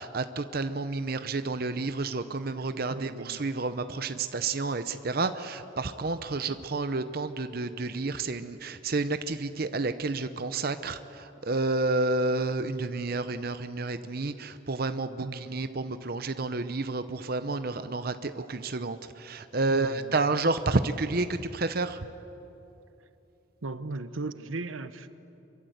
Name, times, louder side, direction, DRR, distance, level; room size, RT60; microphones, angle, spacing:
voice 1, 0.0-22.1, right 3 dB, 50° right, 0.8 m, -30 dB
voice 2, 2.9-3.4 6.5-6.6 15.2-15.5 19.7-20.2 23.6-25.1, right 3 dB, 90° right, 1.0 m, -37 dB
25.5 x 23.0 x 8.0 m
head